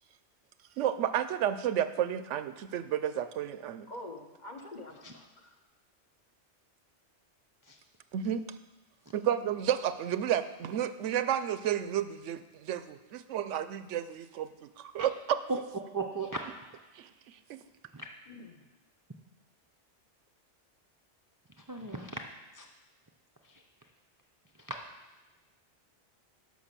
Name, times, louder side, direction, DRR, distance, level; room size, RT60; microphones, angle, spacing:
voice 1, 0.8-3.9 8.1-8.4 9.1-15.4 16.9-17.6, right 10 dB, 90° right, 12 dB, 0.9 m, -32 dB
voice 2, 3.9-5.6 18.3-18.7, left 2 dB, 40° left, 3 dB, 1.1 m, -46 dB
voice 3, 15.9-16.4 17.9-18.1 21.6-22.2 22.5-22.7 23.4-23.6 24.6-24.8, right 3 dB, 25° right, 2 dB, 0.4 m, -37 dB
11.5 x 5.3 x 6.8 m, 1.1 s
omnidirectional pair, 1.2 m